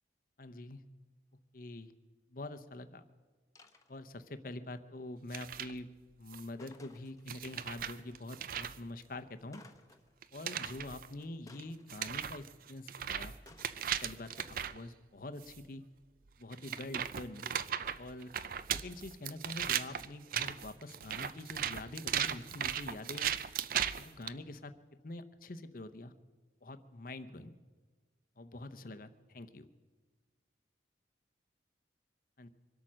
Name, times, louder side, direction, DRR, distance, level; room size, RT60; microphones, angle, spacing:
voice 1, 0.4-0.8 1.5-1.9 2.3-3.0 3.9-5.9 6.2-9.6 10.3-13.3 14.0-15.8 16.4-17.5 18.0-18.3 18.7-23.3 24.0-24.7 25.0-26.1 26.6-27.5 28.4-29.7 32.4-32.5, left 2 dB, 50° left, 10 dB, 0.8 m, -45 dB
sound 1, 3.6-4.3 6.6-7.6 9.5-10.3 11.5-12.6 13.5-14.7, left 3 dB, 20° left, 0.9 m, -60 dB
sound 2, 5.3-5.7 6.3-6.7 7.3-8.8 10.2-11.1 11.6-11.7 11.9-14.8 15.4-15.6 16.5-24.3, right 9 dB, 50° right, 0.4 m, -37 dB
24.5 x 8.6 x 6.3 m, 1.4 s
head